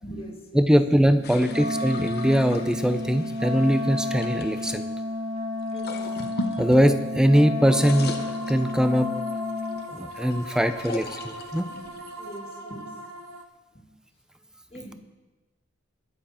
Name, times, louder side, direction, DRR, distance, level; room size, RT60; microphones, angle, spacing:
voice 1, 0.0-0.7 1.1-1.2 5.7-6.0 12.2-12.9 13.7-13.9 14.7-14.9, equal, 30° left, 1 dB, 2.2 m, -41 dB
voice 2, 0.5-4.9 6.6-9.1 9.9-11.7, equal, 5° right, 10 dB, 0.6 m, -21 dB
sound 1, 1.2-4.8 5.6-7.3 7.6-9.1 9.6-13.0, left 2 dB, 50° left, 1.1 m, -39 dB
Wind instrument woodwind instrument, 1.4-9.9, left 2 dB, 30° right, 1.2 m, -31 dB
sound 2, 7.6-13.4, right 1 dB, 80° right, 1.1 m, -40 dB
22.5 x 7.7 x 4.4 m, 1.2 s
head